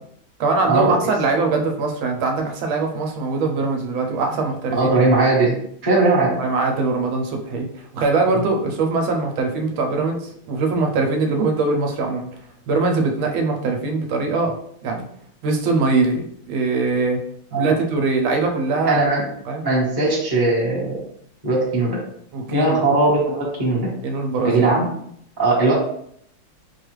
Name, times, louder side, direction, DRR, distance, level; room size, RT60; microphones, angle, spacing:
voice 1, 0.4-4.9 6.4-7.7 7.9-12.3 12.7-14.5 14.8-15.0 15.4-17.2 17.5-19.0 19.5-19.7 22.3-22.8 24.0-24.8, right 3 dB, 85° right, 3 dB, 1.4 m, -22 dB
voice 2, 4.7-6.4 17.5-17.7 18.8-19.2 19.6-21.0 21.4-22.0 22.5-23.9 24.4-24.9 25.4-25.7, right 2 dB, 15° right, -5 dB, 0.8 m, -19 dB
5.0 x 2.3 x 3.1 m, 0.69 s
omnidirectional pair, 2.2 m